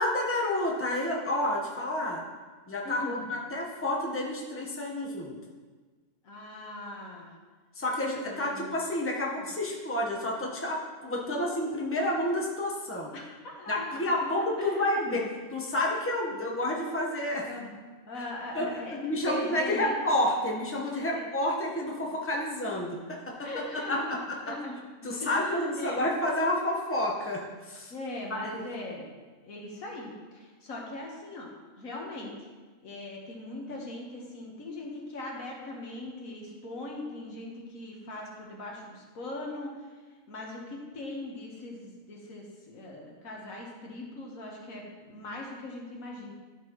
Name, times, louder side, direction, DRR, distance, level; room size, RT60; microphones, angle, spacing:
voice 1, 0.0-2.2 2.7-5.4 7.7-13.1 13.7-15.2 15.5-17.5 18.1-18.3 18.5-23.6 23.9-24.2 25.0-27.9 28.3-28.6, left 1 dB, 10° left, -3 dB, 1.0 m, -30 dB
voice 2, 2.8-3.3 6.2-7.3 8.2-8.8 9.4-9.5 13.1-15.2 17.4-17.8 18.1-20.0 21.1-21.2 23.4-24.8 25.0-26.1 27.9-29.1 29.4-31.5 31.8-32.3 32.8-39.7 40.3-46.3, left 2 dB, 85° left, -1 dB, 1.8 m, -40 dB
12.0 x 6.0 x 3.1 m, 1.4 s
omnidirectional pair, 1.4 m